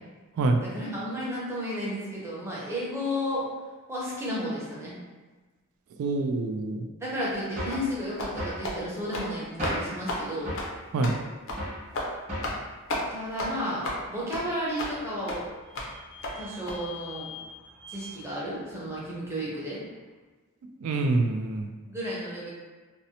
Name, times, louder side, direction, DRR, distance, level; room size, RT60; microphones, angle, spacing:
voice 1, 0.7-3.5 3.9-5.0 7.0-10.5 13.1-15.5 16.3-17.3 17.9-19.8 21.9-22.5, equal, 10° right, -7 dB, 0.6 m, -33 dB
voice 2, 6.0-6.9 10.9-11.1 20.8-21.7, right 3 dB, 85° right, 8 dB, 0.3 m, -26 dB
sound 1, 7.6-7.9 8.4-8.6 9.6-10.0 10.5-10.7 11.6-11.8 12.3-12.6, equal, 30° right, 1.1 m, -33 dB
sound 2, 7.7-7.9 8.2-8.4 8.6-8.8 9.1-9.3 9.6-9.8 10.1-10.2 10.6-10.7 11.0-11.2 11.5-11.6 11.9-12.1 12.4-12.6 12.9-13.0 13.4-13.5 13.8-14.0 14.3-14.4 14.8-14.9 15.3-15.4 15.8-15.9 16.2-16.3 16.7-16.8, left 1 dB, 65° left, 0.4 m, -32 dB
Vehicle / Squeak, 14.5-19.8, left 3 dB, 55° right, 0.8 m, -48 dB
2.6 x 2.0 x 2.7 m, 1.3 s
head